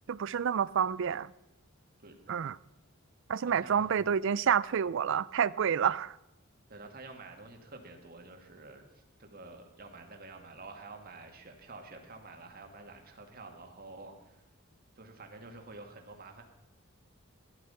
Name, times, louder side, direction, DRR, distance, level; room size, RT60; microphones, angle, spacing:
voice 1, 0.1-1.3 2.3-2.6 3.3-6.2, right 7 dB, 60° right, 0.4 m, -28 dB
voice 2, 2.0-2.4 3.4-4.0 6.7-14.4 15.0-16.4, right 3 dB, 45° right, 2.2 m, -49 dB
15.0 x 11.5 x 5.7 m
head